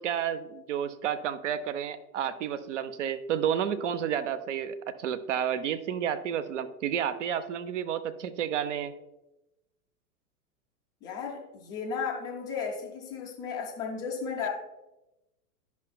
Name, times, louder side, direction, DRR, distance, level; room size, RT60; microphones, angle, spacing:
voice 1, 0.0-8.9, right 9 dB, 50° right, 12 dB, 0.6 m, -31 dB
voice 2, 11.0-14.5, left 5 dB, 10° left, 0 dB, 0.4 m, -34 dB
10.5 x 5.7 x 2.2 m, 0.96 s
figure-of-eight pair, 95°, 46 cm